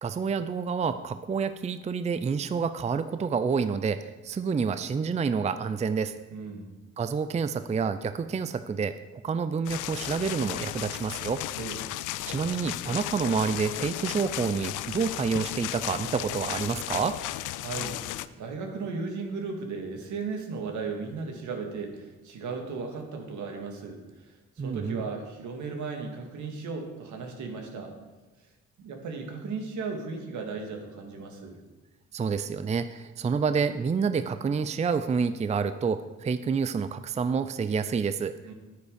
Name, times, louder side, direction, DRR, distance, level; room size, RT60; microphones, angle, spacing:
voice 1, 0.0-6.1 7.0-11.4 12.3-17.2 24.6-25.0 32.1-38.3, right 5 dB, 25° right, 11 dB, 0.5 m, -28 dB
voice 2, 6.3-6.7 11.6-11.8 17.6-18.0 18.4-24.0 24.6-27.9 28.8-31.6 38.5-38.6, right 4 dB, 75° right, 3 dB, 2.0 m, -36 dB
sound 1, 9.6-18.3, left 15 dB, 85° left, 0.5 m, -35 dB
9.7 x 9.3 x 5.2 m, 1.2 s
cardioid pair, 90°, 30 cm